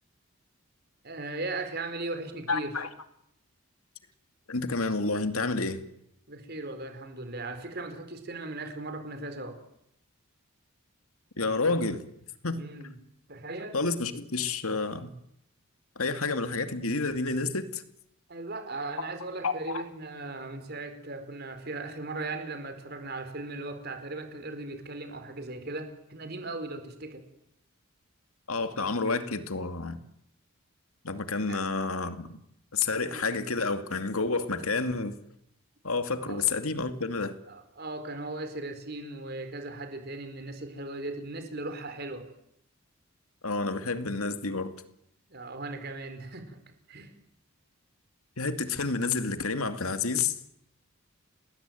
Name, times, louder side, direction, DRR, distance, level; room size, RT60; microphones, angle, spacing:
voice 1, 1.0-2.8 6.3-9.6 12.5-12.9 13.3-13.8 18.3-27.2 31.5-31.6 33.1-33.2 36.3-36.4 37.5-42.3 45.3-46.6 46.9-47.1, right 2 dB, 45° right, 4.5 m, -38 dB
voice 2, 2.5-2.9 4.5-5.9 11.4-12.0 12.4-12.6 13.7-15.1 16.0-17.8 19.4-19.8 28.5-30.0 31.0-32.4 32.7-35.2 35.8-37.3 43.4-44.7 48.4-50.4, left 3 dB, 80° left, 2.4 m, -29 dB
29.5 x 20.5 x 9.3 m
head